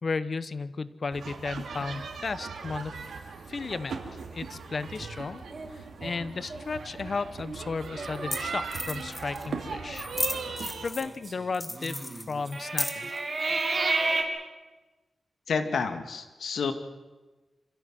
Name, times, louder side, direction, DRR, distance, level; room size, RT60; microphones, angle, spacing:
voice 1, 0.0-3.0 3.5-4.0 4.3-5.4 5.7-10.1 10.4-13.1, left 4 dB, 45° left, 15 dB, 1.0 m, -34 dB
sound 1, 1.1-10.9, right 5 dB, 80° right, 2.8 m, -38 dB
sound 2, 5.5-7.2 7.6-7.7 8.0-8.4 8.8-9.1 10.0-14.2, right 3 dB, 35° right, 3.2 m, -32 dB
sound 3, 7.2-7.3 8.0-8.1 8.3-8.4 8.7-9.5 9.9-11.2 11.5-13.2, left 1 dB, 15° left, 2.3 m, -34 dB
voice 2, 15.5-16.7, left 5 dB, 80° left, 8 dB, 2.2 m, -29 dB
26.5 x 16.0 x 7.7 m, 1.2 s
wide cardioid pair, 115°, 0 cm